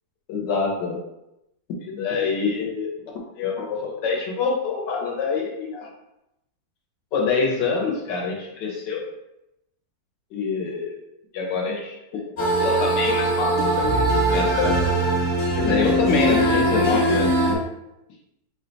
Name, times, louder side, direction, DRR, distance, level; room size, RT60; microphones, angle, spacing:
voice 1, 0.3-1.0 1.8-2.9 3.4-5.9 7.1-9.1 10.3-11.0 11.3-11.9 12.6-13.9 14.3-14.9 15.6-17.6, left 4 dB, 75° left, -1 dB, 1.5 m, -25 dB
sound 1, 12.4-17.5, right 1 dB, 45° left, 1.1 m, -21 dB
4.6 x 2.2 x 3.9 m, 0.88 s
omnidirectional pair, 1.9 m